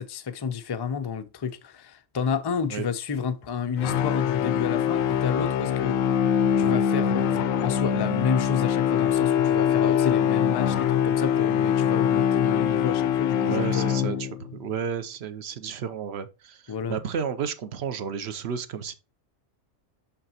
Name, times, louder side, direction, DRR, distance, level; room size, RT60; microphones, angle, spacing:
voice 1, 0.0-6.0 6.6-14.0 16.7-17.0, left 6 dB, 40° left, 0.3 m, -30 dB
sound 1, 3.8-14.5, left 9 dB, 80° left, 1.0 m, -23 dB
voice 2, 13.4-18.9, right 7 dB, 60° right, 0.9 m, -32 dB
6.7 x 5.8 x 2.9 m
omnidirectional pair, 1.4 m